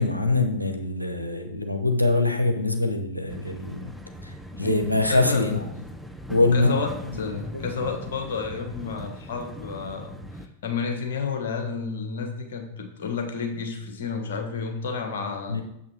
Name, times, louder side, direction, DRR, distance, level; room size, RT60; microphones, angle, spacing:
voice 1, 0.0-3.9 4.2-5.6 6.3-7.2 15.5-15.6, left 2 dB, 85° left, 5 dB, 0.9 m, -24 dB
sound 1, 3.3-10.5, equal, ahead, 0.7 m, -40 dB
voice 2, 4.6-5.6 6.4-6.9 7.2-15.6, left 5 dB, 60° left, 4 dB, 1.4 m, -31 dB
7.3 x 5.8 x 4.5 m, 0.80 s
figure-of-eight pair, 90°, 0 cm